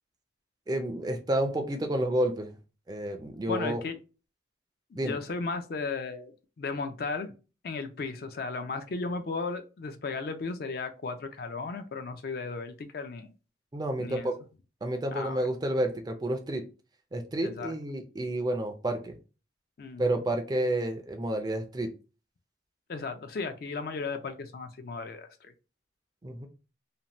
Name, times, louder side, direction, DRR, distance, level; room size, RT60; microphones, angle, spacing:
voice 1, 0.7-2.5 2.9-3.8 5.0-5.2 13.7-14.3 14.8-16.6 17.1-19.2 20.0-21.9 26.2-26.5, right 1 dB, 20° right, 5 dB, 0.3 m, -30 dB
voice 2, 3.5-4.0 4.9-7.3 7.6-13.3 14.0-14.3 15.1-15.5 17.4-17.7 19.8-20.2 22.9-25.5, left 4 dB, 50° left, 8 dB, 0.4 m, -35 dB
2.7 x 2.1 x 2.9 m, 0.32 s
head